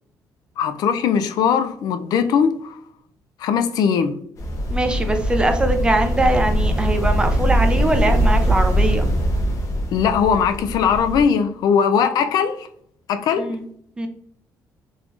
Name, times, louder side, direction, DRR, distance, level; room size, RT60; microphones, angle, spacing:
voice 1, 0.6-2.8 3.4-4.1 9.9-12.7 13.1-13.6, left 7 dB, 75° left, 0.4 m, -20 dB
sound 1, 4.4-11.2, equal, 50° left, 0.9 m, -21 dB
voice 2, 4.7-9.1 13.4-13.7 14.0-14.1, right 2 dB, 15° right, 0.5 m, -22 dB
3.9 x 3.0 x 2.5 m
cardioid pair, 140°, 7 cm